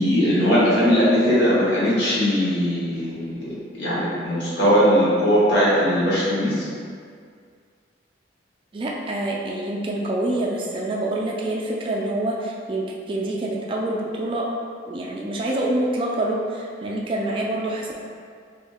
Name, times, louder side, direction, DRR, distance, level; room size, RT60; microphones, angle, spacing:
voice 1, 0.0-6.7, equal, 75° left, -9 dB, 1.2 m, -20 dB
voice 2, 8.7-14.6 14.9-18.0, right 1 dB, 30° right, -2 dB, 0.3 m, -26 dB
3.0 x 2.7 x 3.5 m, 2.1 s
head